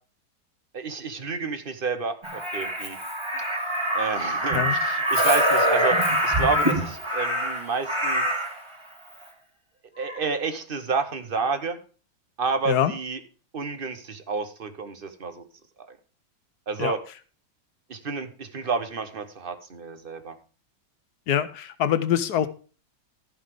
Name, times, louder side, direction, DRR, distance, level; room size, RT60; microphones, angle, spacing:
voice 1, 0.7-3.0 3.9-6.0 6.2-8.2 10.0-11.8 12.4-13.2 13.5-15.4 15.9-16.0 16.7-17.0 17.9-20.3, right 4 dB, 35° right, 9 dB, 1.1 m, -30 dB
Crow, 2.2-8.6 10.0-10.2, equal, 15° right, 1.9 m, -24 dB
voice 2, 21.3-22.5, left 10 dB, 65° left, 13 dB, 1.2 m, -24 dB
13.0 x 5.7 x 4.9 m, 0.37 s
omnidirectional pair, 1.9 m